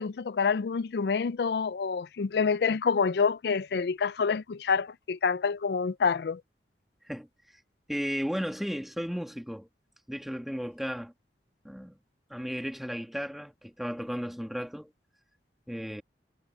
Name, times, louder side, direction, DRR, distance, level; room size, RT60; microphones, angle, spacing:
voice 1, 0.0-6.4, left 5 dB, 65° left, 0.4 m, -27 dB
voice 2, 7.9-9.7 10.1-11.1 11.6-12.0 12.3-14.9 15.7-16.0, equal, ahead, 1.5 m, -34 dB
head